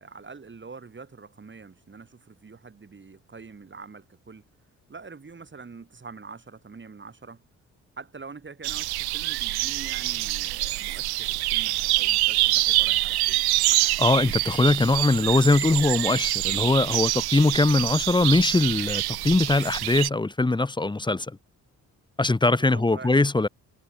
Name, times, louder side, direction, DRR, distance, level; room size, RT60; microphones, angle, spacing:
voice 1, 0.0-4.4 4.9-7.4 8.0-13.4 22.5-23.2, right 4 dB, 30° right, 2.0 m, -45 dB
sound 1, 8.6-20.1, right 19 dB, 70° right, 0.9 m, -26 dB
voice 2, 13.8-21.4 22.2-23.5, left 2 dB, 10° left, 0.8 m, -21 dB
hypercardioid pair, 45°, 39 cm